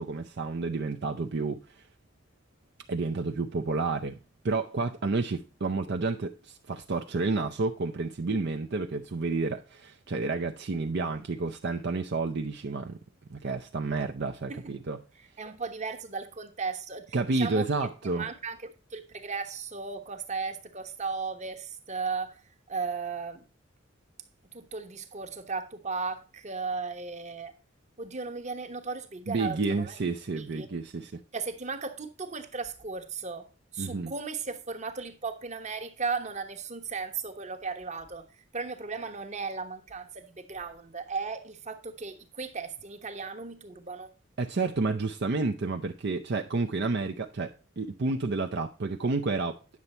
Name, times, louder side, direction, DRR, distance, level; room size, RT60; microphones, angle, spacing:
voice 1, 0.0-1.8 2.9-4.1 4.4-13.0 13.3-15.0 17.1-18.3 29.3-31.2 33.8-34.1 44.4-49.6, right 3 dB, 60° right, 0.6 m, -30 dB
voice 2, 15.4-17.7 18.1-22.4 22.7-23.4 24.5-27.5 28.0-29.9 30.4-30.7 31.3-33.5 33.7-44.1, right 4 dB, 40° right, 1.2 m, -36 dB
9.6 x 6.9 x 4.3 m
head